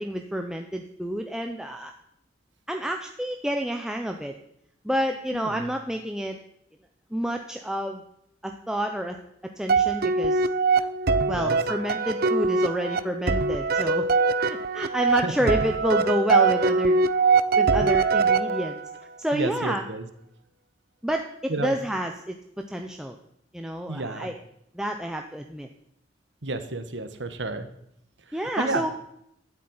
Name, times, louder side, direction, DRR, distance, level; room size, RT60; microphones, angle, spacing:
voice 1, 0.0-1.9 2.7-4.3 4.8-6.4 7.1-8.0 8.4-9.2 9.6-10.4 11.3-14.1 14.5-17.0 17.6-18.8 19.2-19.8 21.0-23.2 23.5-24.4 24.7-25.7 28.3-28.9, equal, 5° right, 3 dB, 0.8 m, -29 dB
voice 2, 5.3-5.7 11.3-11.6 15.2-15.5 19.3-20.1 21.5-21.8 23.9-24.3 26.4-27.7 28.3-28.8, right 2 dB, 70° right, 9 dB, 1.6 m, -31 dB
sound 1, 9.7-19.0, right 4 dB, 55° right, 0.7 m, -22 dB
13.0 x 7.6 x 9.8 m, 0.75 s
head